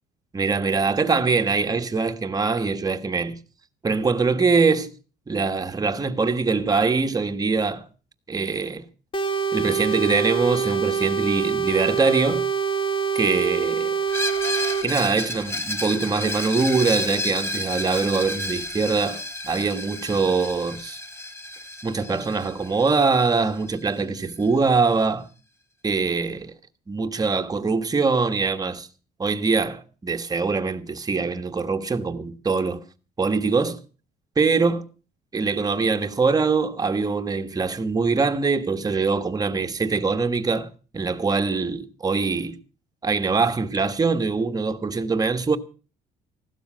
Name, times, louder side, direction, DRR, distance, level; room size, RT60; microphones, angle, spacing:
voice 1, 0.3-3.4 3.8-4.9 5.3-7.8 8.3-8.8 9.5-12.5 13.1-13.9 14.8-21.0 21.8-25.3 25.8-26.5 26.9-28.9 29.2-32.8 33.2-33.8 34.4-34.8 35.3-42.6 43.0-45.6, right 4 dB, 20° right, 1.4 m, -23 dB
sound 1, 9.1-14.9, right 6 dB, 30° left, 1.8 m, -25 dB
Screech, 14.1-23.7, left 1 dB, 15° left, 2.7 m, -31 dB
16.0 x 12.5 x 6.3 m
cardioid pair, 110°, 17 cm